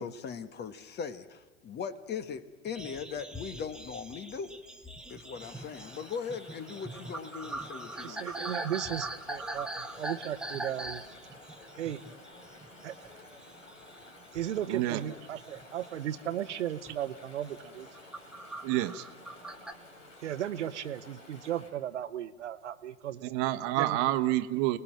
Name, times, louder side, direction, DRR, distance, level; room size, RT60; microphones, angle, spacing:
voice 1, 0.0-4.5 5.1-8.6, left 6 dB, 25° left, 13 dB, 1.4 m, -39 dB
sound 1, 2.7-13.1 13.4-14.1 14.3-15.9 16.3-16.5 16.8-17.1 17.6-19.7, right 2 dB, ahead, 1.5 m, -42 dB
Chatter / Stream, 5.4-21.7, left 1 dB, 85° left, 5.5 m, -52 dB
voice 2, 8.0-11.0 11.8-12.0 12.8-12.9 14.3-17.9 20.2-23.3 23.7-24.0, right 11 dB, 70° right, 12 dB, 1.1 m, -36 dB
voice 3, 14.7-15.0 18.6-19.0 23.3-24.8, right 15 dB, 45° right, 10 dB, 1.3 m, -28 dB
28.0 x 20.0 x 7.6 m, 1.2 s
figure-of-eight pair, 95°, 36 cm